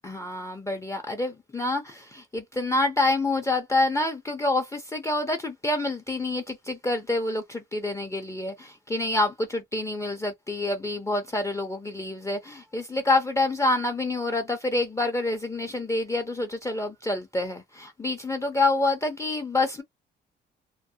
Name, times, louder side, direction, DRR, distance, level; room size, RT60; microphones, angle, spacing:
voice 1, 0.0-19.8, left 2 dB, 15° left, 0.5 m, -27 dB
2.3 x 2.1 x 2.7 m
cardioid pair, 90°, 20 cm